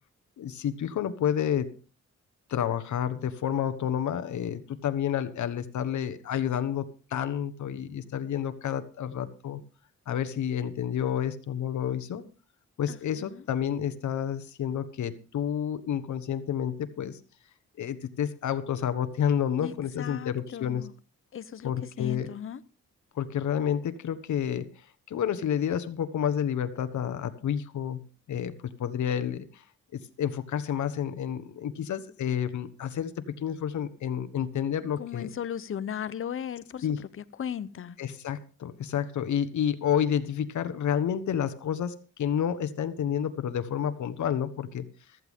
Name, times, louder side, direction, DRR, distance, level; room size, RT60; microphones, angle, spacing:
voice 1, 0.4-1.8 2.5-9.6 10.1-12.2 12.8-17.2 17.8-20.8 21.6-22.3 23.1-24.7 25.1-28.0 28.3-29.6 29.9-35.3 36.8-37.0 38.0-44.9, left 9 dB, 85° left, 1.3 m, -30 dB
voice 2, 12.9-13.4 19.6-20.9 21.3-21.7 22.0-22.6 35.0-36.9 37.1-38.0, left 9 dB, 45° left, 0.7 m, -36 dB
15.0 x 14.0 x 3.7 m
wide cardioid pair, 165°, 29 cm